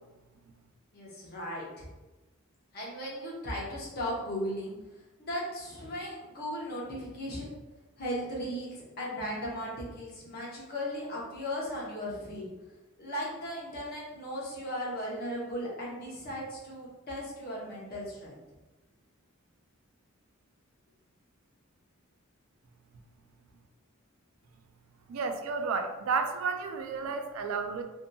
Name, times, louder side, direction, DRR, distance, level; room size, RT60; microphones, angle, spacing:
voice 1, 0.9-1.9 2.7-4.8 5.2-7.5 8.0-12.5 13.0-18.4, equal, 45° left, -4 dB, 0.8 m, -37 dB
voice 2, 25.1-27.8, right 4 dB, 75° right, 6 dB, 0.3 m, -32 dB
2.6 x 2.6 x 2.2 m, 1.1 s
head